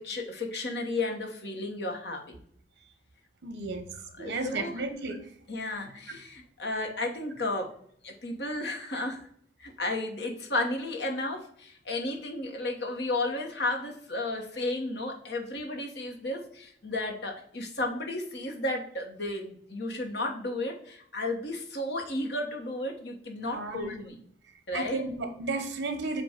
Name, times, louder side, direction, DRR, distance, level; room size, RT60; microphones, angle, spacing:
voice 1, 0.0-2.3 4.2-4.8 5.5-7.7 8.0-9.2 9.6-24.2 24.7-25.0, left 2 dB, 60° left, 2 dB, 1.3 m, -33 dB
voice 2, 3.4-3.9 4.2-5.2 23.4-23.9 24.7-26.2, right 3 dB, 80° right, 6 dB, 0.9 m, -33 dB
7.6 x 2.6 x 5.0 m, 0.65 s
head